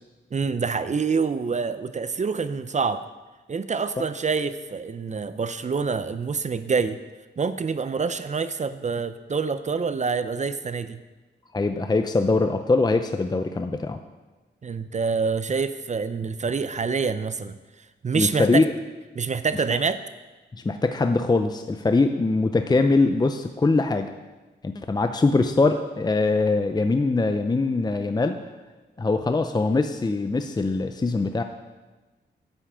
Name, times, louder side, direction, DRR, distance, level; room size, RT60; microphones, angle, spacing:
voice 1, 0.3-3.0 3.5-7.0 7.4-11.0 14.6-17.6 18.0-18.7 19.1-20.0, right 5 dB, 40° right, 12 dB, 0.6 m, -26 dB
voice 2, 11.5-14.0 18.1-18.6 20.5-24.1 24.6-28.4 29.0-31.4, left 3 dB, 20° left, 7 dB, 0.6 m, -22 dB
9.9 x 5.8 x 8.3 m, 1.2 s
cardioid pair, 80°, 19 cm